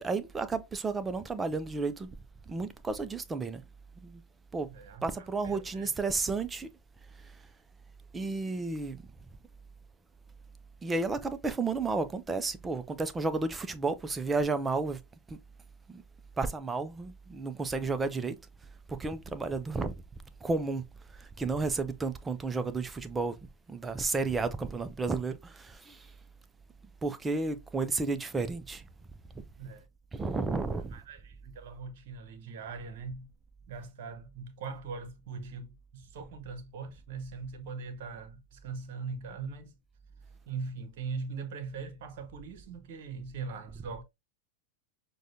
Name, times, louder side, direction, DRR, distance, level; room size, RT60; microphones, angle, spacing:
voice 1, 0.0-2.2 2.5-3.6 4.0-4.2 4.5-4.7 5.0-6.7 7.2-7.4 8.1-9.0 10.8-15.0 15.3-15.4 15.9-16.0 16.4-18.4 18.9-19.9 20.4-23.4 23.7-26.1 27.0-28.9 30.1-31.0, right 3 dB, 15° right, 0.5 m, -32 dB
voice 2, 4.7-5.9 29.6-29.9 30.7-33.3 33.7-39.7 40.5-44.0, right 4 dB, 50° right, 0.9 m, -41 dB
6.2 x 2.3 x 2.6 m
figure-of-eight pair, 90°, 0 cm